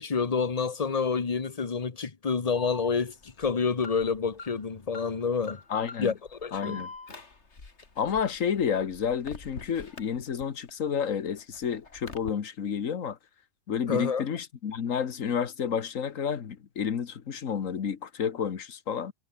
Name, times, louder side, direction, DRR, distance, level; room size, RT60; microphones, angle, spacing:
voice 1, 0.0-5.6 6.0-6.1 6.4-6.8 13.9-14.2, left 5 dB, 30° left, 1.2 m, -28 dB
Alarm, 2.5-10.7 11.1-12.3, left 3 dB, 55° left, 2.9 m, -45 dB
voice 2, 5.7-6.1 6.5-6.9 8.0-13.2 13.7-19.1, left 7 dB, 80° left, 1.7 m, -30 dB
omnidirectional pair, 1.4 m